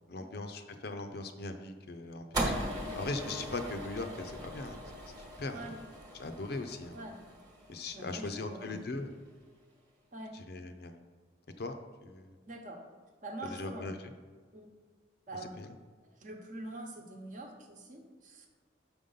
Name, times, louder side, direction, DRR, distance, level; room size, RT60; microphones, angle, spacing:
voice 1, 0.1-4.8 5.1-5.8 6.1-6.9 7.7-9.1 10.3-11.0 11.6-12.4 13.4-14.0 15.6-15.7, left 2 dB, 55° left, 7 dB, 0.6 m, -40 dB
sound 1, 2.3-8.7, right 1 dB, 20° right, 1.1 m, -39 dB
voice 2, 7.9-8.8 10.1-10.3 12.5-12.8 13.2-13.9 14.5-14.7 15.3-15.6 16.1-18.5, right 1 dB, 40° right, 3 dB, 1.0 m, -44 dB
6.0 x 5.2 x 5.6 m, 1.5 s
head